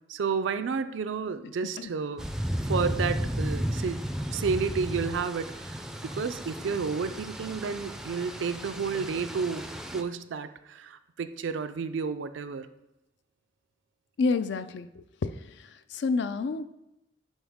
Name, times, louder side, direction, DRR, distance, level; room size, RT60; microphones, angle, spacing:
voice 1, 0.1-2.3 2.7-4.0 4.3-9.7 9.9-12.7, right 5 dB, 80° right, 11 dB, 0.4 m, -31 dB
sound 1, 2.2-10.0, equal, 5° right, 0.4 m, -34 dB
voice 2, 14.2-16.6, left 4 dB, 65° left, 12 dB, 0.4 m, -29 dB
7.2 x 5.2 x 3.5 m, 0.89 s
head